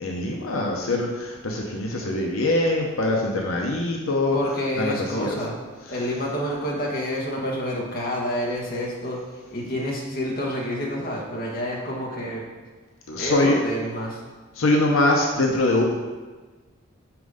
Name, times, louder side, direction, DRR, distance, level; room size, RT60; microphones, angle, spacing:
voice 1, 0.0-4.4 4.8-5.4 13.1-13.6 14.6-16.0, left 2 dB, 85° left, 0 dB, 0.8 m, -23 dB
voice 2, 4.3-5.6 5.9-9.2 9.5-12.4 13.2-14.2, equal, 45° left, -2 dB, 1.3 m, -28 dB
5.9 x 5.3 x 4.9 m, 1.3 s
head